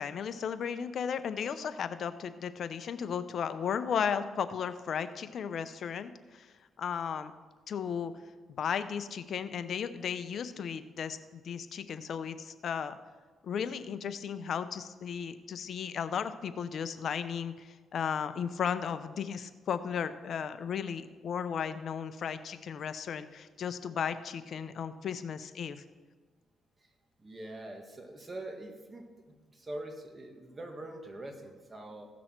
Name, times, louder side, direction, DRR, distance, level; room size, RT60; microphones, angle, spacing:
voice 1, 0.0-6.5 6.8-7.3 7.7-8.1 8.6-13.0 13.4-25.8, left 7 dB, 60° left, 12 dB, 0.6 m, -35 dB
voice 2, 27.2-29.1 29.5-32.1, right 1 dB, 25° right, 3 dB, 1.7 m, -43 dB
15.5 x 6.2 x 4.5 m, 1.4 s
cardioid pair, 90°, 0 cm